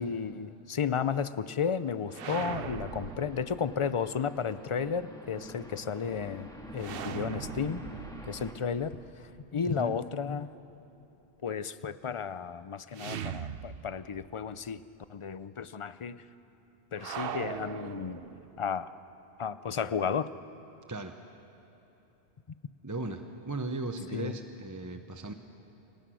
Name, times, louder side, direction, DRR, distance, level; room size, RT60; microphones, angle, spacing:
voice 1, 0.0-7.8 8.2-10.5 11.4-14.8 15.1-16.2 16.9-18.2 18.6-18.9 19.4-20.3 24.1-24.3, left 6 dB, 40° left, 14 dB, 0.5 m, -33 dB
sound 1, 2.1-8.5, equal, 5° left, 2.0 m, -46 dB
sound 2, 2.1-4.1 6.8-9.8 12.9-14.3 14.6-14.7 17.0-18.7, right 8 dB, 65° right, 0.9 m, -40 dB
voice 2, 9.7-10.0 20.9-21.2 22.8-25.3, right 2 dB, 20° right, 6 dB, 0.9 m, -37 dB
29.0 x 24.5 x 6.3 m, 3.0 s
omnidirectional pair, 1.1 m